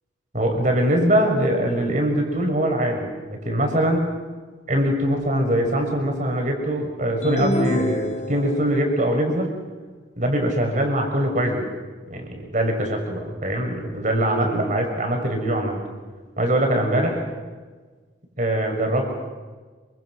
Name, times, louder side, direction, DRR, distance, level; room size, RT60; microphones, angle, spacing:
voice 1, 0.3-4.0 4.7-9.5 10.2-11.7 12.1-15.8 16.4-17.2 18.4-19.2, right 1 dB, 40° right, 3 dB, 6.2 m, -22 dB
sound 1, 7.2-8.8, left 1 dB, 35° left, 1.4 m, -26 dB
27.5 x 25.5 x 6.5 m, 1.4 s
head